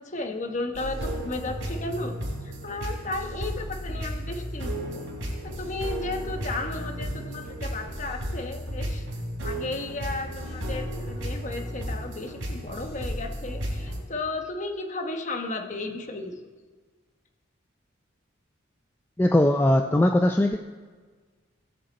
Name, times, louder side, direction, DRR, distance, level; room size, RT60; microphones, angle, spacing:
voice 1, 0.0-2.2 2.4-5.0 5.4-9.0 9.4-16.4, left 2 dB, 35° left, 4 dB, 1.0 m, -34 dB
sound 1, 0.7-14.0, equal, 90° right, 3.4 m, -33 dB
voice 2, 19.2-20.6, left 1 dB, 10° left, 5 dB, 0.3 m, -20 dB
19.0 x 6.5 x 4.1 m, 1.5 s
head